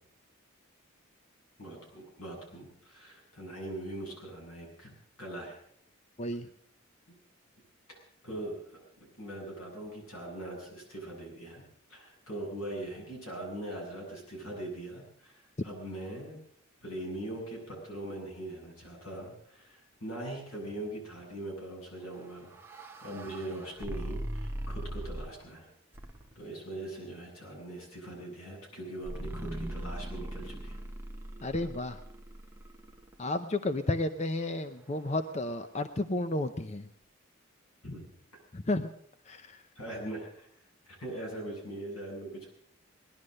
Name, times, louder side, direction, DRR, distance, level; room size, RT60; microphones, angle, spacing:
voice 1, 1.6-4.9 5.2-5.6 7.9-8.8 9.2-11.6 11.9-16.4 16.8-22.5 23.0-25.7 26.3-30.8 37.8-38.0 39.8-40.5 40.9-42.5, right 1 dB, 85° left, -1 dB, 7.9 m, -41 dB
sound 1, 22.1-25.5 25.9-26.5 29.0-33.1, right 1 dB, 10° right, 1.0 m, -40 dB
voice 2, 31.4-32.0 33.2-36.9 38.5-38.9 39.3-39.6, left 2 dB, 30° left, 9 dB, 0.6 m, -32 dB
19.5 x 11.5 x 6.5 m, 0.67 s
head